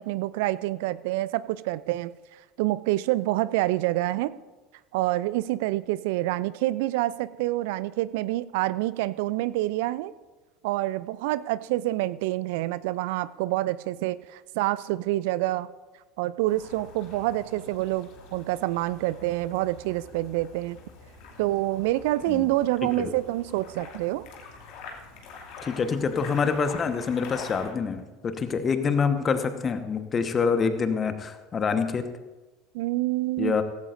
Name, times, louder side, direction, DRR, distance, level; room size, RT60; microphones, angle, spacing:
voice 1, 0.0-2.1 2.6-4.3 4.9-10.1 10.6-15.7 16.2-20.8 21.4-24.2 32.7-33.5, right 17 dB, 65° right, 18 dB, 0.4 m, -27 dB
sound 1, 16.5-27.7, left 4 dB, 60° left, 2.5 m, -45 dB
voice 2, 25.6-32.0 33.4-33.6, left 5 dB, 30° left, 9 dB, 1.2 m, -26 dB
16.5 x 15.5 x 2.6 m, 1.2 s
figure-of-eight pair, 70°, 0 cm